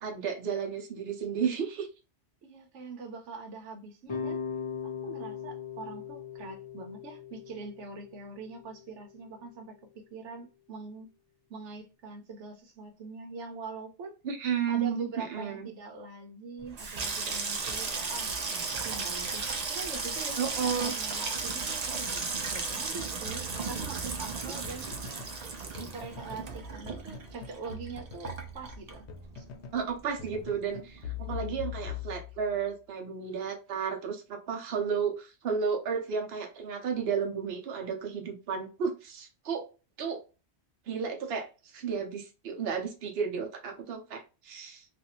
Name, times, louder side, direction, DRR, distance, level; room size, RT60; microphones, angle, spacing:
voice 1, 0.0-1.9 14.2-15.7 20.4-20.9 29.7-39.7 40.0-40.2 40.9-44.9, right 6 dB, 65° right, 2 dB, 0.9 m, -33 dB
voice 2, 2.4-4.4 4.8-11.1 11.5-14.1 14.7-20.5 20.8-24.9 25.8-29.1 29.4-29.5, right 4 dB, 90° right, 4 dB, 1.0 m, -43 dB
sound 1, 4.1-9.2, left 6 dB, 35° left, 0.5 m, -39 dB
Water tap faucet / Sink (filling or washing), 16.6-29.5 29.8-30.4 30.7-31.0, right 4 dB, 50° right, 0.5 m, -35 dB
sound 2, 23.2-25.4 25.7-26.5 26.9-29.9 30.2-32.6, left 6 dB, 75° left, 0.9 m, -42 dB
2.6 x 2.4 x 2.8 m, 0.31 s
omnidirectional pair, 1.2 m